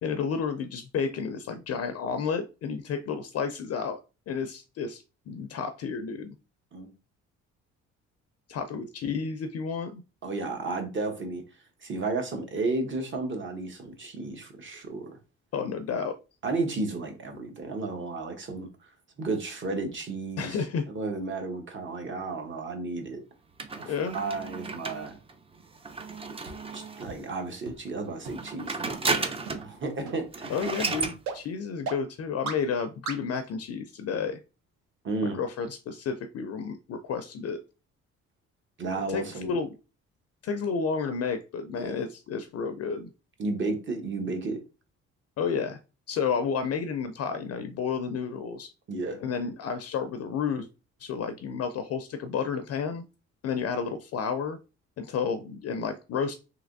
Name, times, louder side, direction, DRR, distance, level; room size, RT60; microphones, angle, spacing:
voice 1, 0.0-4.0 4.3-6.3 8.5-10.0 15.5-16.1 20.4-20.8 23.9-24.2 30.5-34.4 35.2-37.6 39.1-39.7 40.4-43.1 45.4-45.8 46.1-48.7 49.2-50.7 51.0-53.0 53.4-54.6 55.0-56.3, left 6 dB, 55° left, 0.4 m, -31 dB
voice 2, 10.2-11.4 11.8-15.2 16.4-18.9 19.2-20.6 20.9-23.2 23.7-25.2 26.7-30.6 35.0-35.4 38.8-39.6 41.8-42.0 43.4-44.6 48.9-49.2, right 3 dB, 40° right, 0.9 m, -33 dB
sound 1, 23.6-27.2 28.2-29.7 30.0-30.1 30.3-31.2, right 3 dB, 20° right, 0.4 m, -33 dB
sound 2, 26.5-26.6 27.1-27.2 27.7-27.8 28.3-28.4 28.9-29.0 29.5-29.6 30.1-30.2 30.7-30.8 31.3-31.4 31.9-32.0 32.5-32.6 33.1-33.2, right 4 dB, 70° right, 0.8 m, -34 dB
3.2 x 2.8 x 2.5 m
cardioid pair, 90°, 30 cm